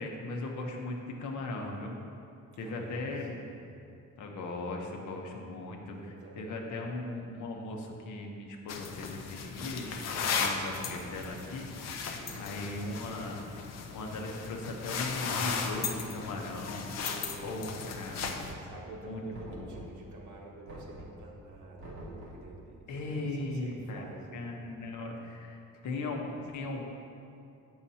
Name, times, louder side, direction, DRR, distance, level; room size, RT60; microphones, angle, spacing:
voice 1, 0.0-2.0 2.6-3.4 4.2-11.7 12.4-13.4 13.9-16.9 17.4-18.3 18.9-19.8 22.9-25.6 25.8-26.8, left 2 dB, 75° left, 1 dB, 0.9 m, -38 dB
voice 2, 2.6-3.7 6.0-6.6 12.2-12.6 17.0-23.2 23.5-24.6, right 3 dB, 75° right, -2 dB, 1.2 m, -49 dB
sound 1, 8.7-18.5, left 5 dB, 60° left, 0.6 m, -36 dB
Knock, 18.2-18.9 19.3-20.1 20.7-21.3 21.8-22.5, equal, 45° right, 1.8 m, -47 dB
8.8 x 6.5 x 2.8 m, 2.6 s
wide cardioid pair, 170°, 30 cm